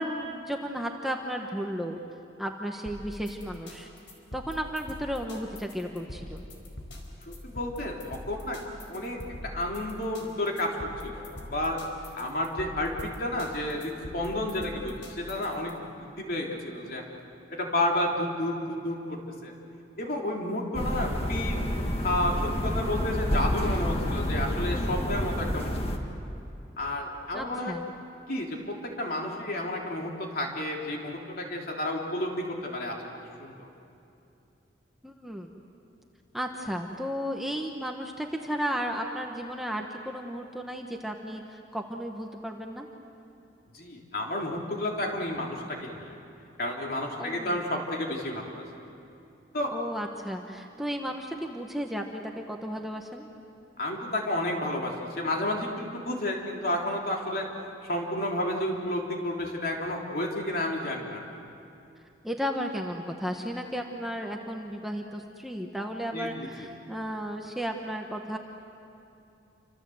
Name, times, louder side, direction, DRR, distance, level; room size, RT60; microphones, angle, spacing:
voice 1, 0.0-2.0 2.4-3.9 4.3-6.4 27.3-27.8 35.0-35.5 36.3-42.9 47.2-47.6 49.7-53.3 62.2-68.4, equal, ahead, 2 dB, 1.2 m, -34 dB
sound 1, 2.9-15.7, left 1 dB, 90° left, 4.6 m, -43 dB
voice 2, 7.3-8.6 8.9-11.8 12.1-17.0 17.5-19.5 20.0-21.6 22.0-25.8 26.8-27.7 28.3-33.0 33.4-33.7 43.7-46.2 46.6-48.6 49.5-49.7 53.8-57.5 57.8-61.2 66.1-66.7, left 1 dB, 50° left, 0 dB, 3.3 m, -31 dB
sound 2, 20.7-26.0, equal, 30° left, 1.9 m, -29 dB
28.5 x 26.0 x 7.9 m, 2.7 s
head